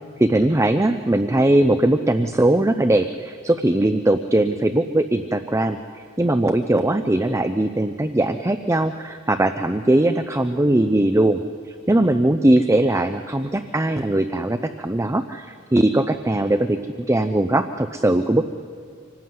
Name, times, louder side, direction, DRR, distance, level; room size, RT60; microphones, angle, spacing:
voice 1, 0.2-11.4 11.7-16.8 17.1-18.4, right 1 dB, 15° right, 9 dB, 0.6 m, -20 dB
25.0 x 18.0 x 9.5 m, 2.2 s
head